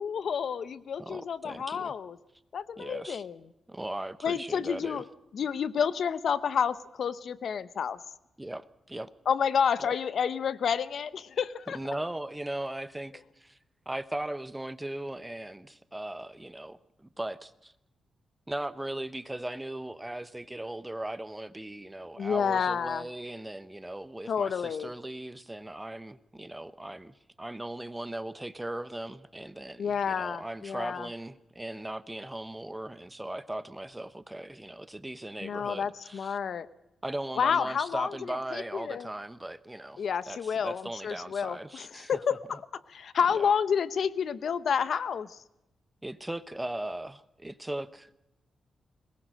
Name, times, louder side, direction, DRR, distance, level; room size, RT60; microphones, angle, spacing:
voice 1, 0.0-2.2 2.5-3.4 4.2-5.0 5.3-8.0 9.3-11.8 22.2-23.0 24.3-24.9 29.8-31.1 35.4-36.7 37.4-39.1 40.0-45.4, left 7 dB, 60° left, 0.8 m, -30 dB
voice 2, 1.0-1.9 2.8-3.2 3.7-5.0 8.4-9.1 9.8-9.9 11.7-13.6 13.9-17.7 18.5-36.4 37.0-42.2 43.3-43.5 46.0-48.1, right 1 dB, 10° right, 0.9 m, -38 dB
22.0 x 20.0 x 6.3 m
wide cardioid pair, 120°, 0 cm